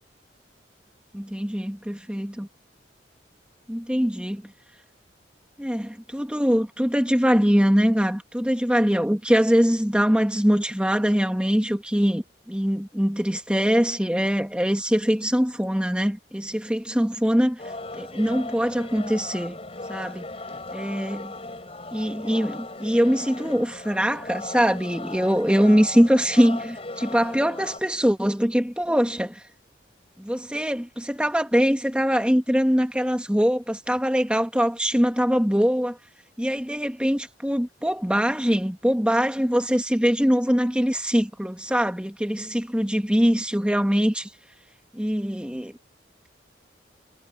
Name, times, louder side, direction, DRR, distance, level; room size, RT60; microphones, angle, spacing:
voice 1, 1.1-2.5 3.7-4.4 5.6-17.6 17.9-19.6 19.9-20.3 20.7-21.3 21.9-29.4 30.2-36.0 36.4-44.3 44.9-45.7, equal, 5° right, 1.6 m, -23 dB
sound 1, 17.6-27.8, left 2 dB, 30° left, 5.1 m, -37 dB
head